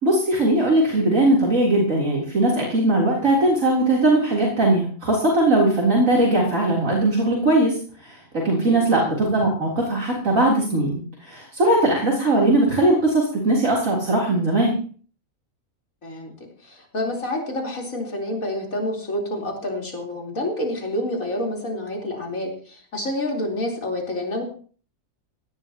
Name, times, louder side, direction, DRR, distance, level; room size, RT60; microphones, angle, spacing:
voice 1, 0.0-14.7, right 1 dB, 70° right, -3 dB, 4.0 m, -20 dB
voice 2, 8.6-8.9 16.0-24.4, left 1 dB, 80° left, -1 dB, 4.4 m, -28 dB
19.0 x 17.5 x 3.0 m, 0.43 s
omnidirectional pair, 1.4 m